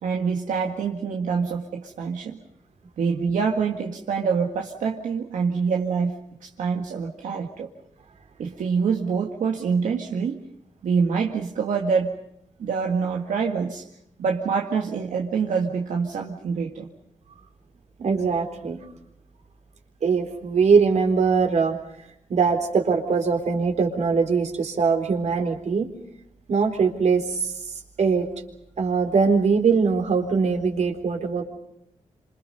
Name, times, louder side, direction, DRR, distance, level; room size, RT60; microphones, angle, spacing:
voice 1, 0.0-2.4 3.0-6.1 6.4-7.7 8.4-10.4 10.8-12.2 12.6-13.9 14.2-16.9, right 5 dB, 90° right, 0 dB, 2.0 m, -25 dB
voice 2, 18.0-18.8 20.0-21.8 22.3-25.9 26.5-27.5 28.0-28.3 28.8-31.4, right 5 dB, 65° right, 4 dB, 4.0 m, -21 dB
28.5 x 27.0 x 5.4 m, 0.75 s
cardioid pair, 95°, 13 cm